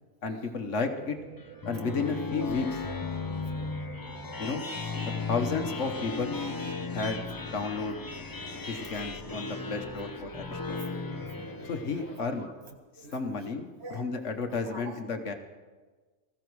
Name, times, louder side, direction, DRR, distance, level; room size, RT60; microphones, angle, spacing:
voice 1, 0.2-1.2 1.6-2.8 4.4-4.6 5.2-6.4 6.9-8.0 8.7-10.8 11.6-12.5 13.0-15.3, left 4 dB, 55° left, 6 dB, 1.3 m, -33 dB
sound 1, 1.0-11.7, right 10 dB, 85° right, 1.2 m, -49 dB
sound 2, 1.4-12.2, left 4 dB, 35° left, 0.3 m, -36 dB
Subway metro underground, 4.9-12.5, left 6 dB, 75° left, 1.4 m, -48 dB
voice 2, 8.5-9.0 9.3-9.8 10.1-10.2 11.6-14.1 14.5-15.0, right 2 dB, 45° right, 4 dB, 1.6 m, -48 dB
20.0 x 14.5 x 4.7 m, 1.3 s
omnidirectional pair, 1.6 m